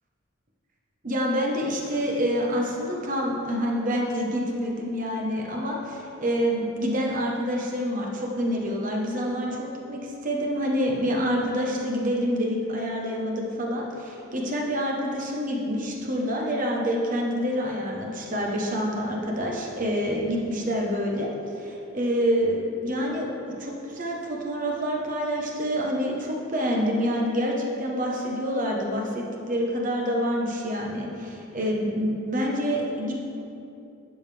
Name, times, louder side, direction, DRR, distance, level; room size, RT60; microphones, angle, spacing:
voice 1, 1.0-21.3 21.6-23.3 23.6-33.1, equal, 40° right, -1 dB, 1.2 m, -27 dB
10.5 x 6.9 x 3.5 m, 2.7 s
head